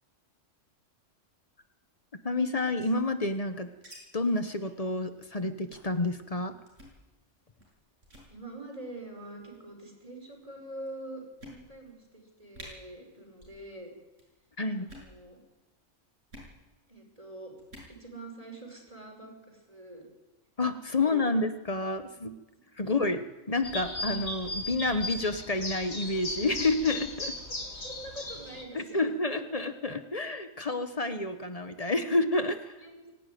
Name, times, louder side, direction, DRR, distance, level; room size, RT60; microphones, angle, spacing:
voice 1, 2.2-3.7 4.1-6.5 14.6-14.9 20.6-22.4 22.8-27.3 28.7-32.7, left 2 dB, 30° left, 9 dB, 1.1 m, -29 dB
sound 1, 2.8-4.0 4.2-4.3 4.6-4.8 5.1-5.3 5.7-6.0 6.7-7.0 7.6-7.8 8.0-8.3 9.2-9.6 10.3-10.4 10.9-11.0 11.4-11.9 12.2-12.3 12.5-12.7 13.3-13.6 13.9-14.3 14.8-15.1 16.3-16.5 17.6-17.9, equal, 85° right, 7.6 m, -50 dB
voice 2, 8.3-13.9 14.8-15.4 16.9-17.5 17.9-20.1 20.9-21.3 22.5-23.1 27.6-29.4 32.8-33.1, right 1 dB, 30° right, 1 dB, 5.0 m, -45 dB
sound 2, 23.6-28.6, left 2 dB, 60° left, 3.2 m, -37 dB
23.5 x 12.0 x 9.2 m, 1.1 s
omnidirectional pair, 1.3 m